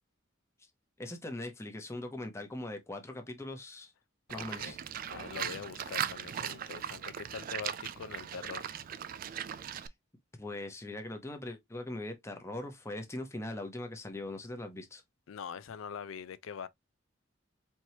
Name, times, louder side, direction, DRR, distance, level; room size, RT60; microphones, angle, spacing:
voice 1, 1.0-3.9 4.3-4.8 10.4-15.0, left 1 dB, 15° left, 0.8 m, -41 dB
voice 2, 4.3-4.8 5.0-8.8 15.3-16.7, left 6 dB, 85° left, 0.4 m, -43 dB
Livestock farm animals working animals, 4.3-9.9, right 9 dB, 45° right, 0.3 m, -39 dB
4.5 x 3.0 x 2.7 m
head